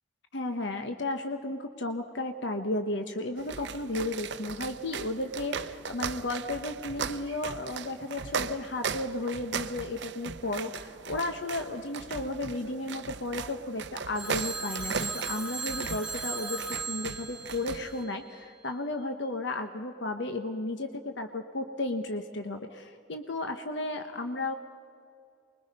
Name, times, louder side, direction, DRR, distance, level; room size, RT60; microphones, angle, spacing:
voice 1, 0.3-24.5, left 2 dB, 70° left, 6 dB, 1.0 m, -34 dB
sound 1, 3.4-18.0, right 6 dB, 65° right, 0.6 m, -38 dB
Telephone, 14.1-18.4, right 4 dB, 5° right, 1.7 m, -37 dB
24.5 x 21.5 x 5.3 m, 2.3 s
head